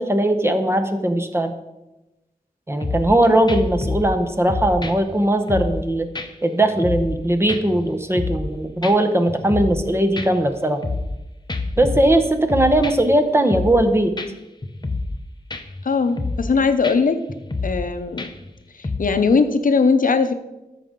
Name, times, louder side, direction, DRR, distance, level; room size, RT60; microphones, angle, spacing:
voice 1, 0.0-1.5 2.7-6.1 6.4-10.8 11.8-14.1, right 1 dB, 15° right, 7 dB, 0.9 m, -19 dB
sound 1, 2.8-3.2 3.5-4.2 4.5-5.9 6.2-6.3 6.6-7.2 7.5-8.5 8.8-8.9 9.3-9.9 10.2-11.2 11.5-13.2 13.5-13.9 14.2-14.3 14.6-15.2 15.5-15.8 16.2-16.5 16.8-17.0 17.3-17.9 18.2-18.5 18.8-19.0, left 3 dB, 30° left, 0.7 m, -28 dB
voice 2, 15.8-17.2 17.6-18.3 18.7-20.3, left 4 dB, 65° left, 9 dB, 0.7 m, -19 dB
13.5 x 5.0 x 3.7 m, 0.97 s
wide cardioid pair, 95°, 15 cm